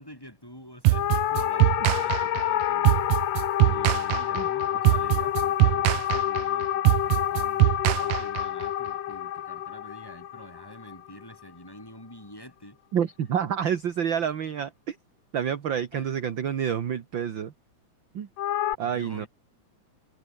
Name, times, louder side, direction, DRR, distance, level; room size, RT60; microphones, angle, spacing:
voice 1, 0.0-3.2 3.6-12.8 15.9-16.6 18.8-19.3, equal, 5° left, 7.3 m, -47 dB
sound 1, 0.8-8.7, right 18 dB, 80° right, 1.8 m, -22 dB
sound 2, 0.9-11.4 18.4-18.7, left 12 dB, 60° left, 2.2 m, -28 dB
voice 2, 12.9-15.0 15.3-17.5 18.1-18.3 18.8-19.3, right 8 dB, 50° right, 1.7 m, -28 dB
omnidirectional pair, 3.6 m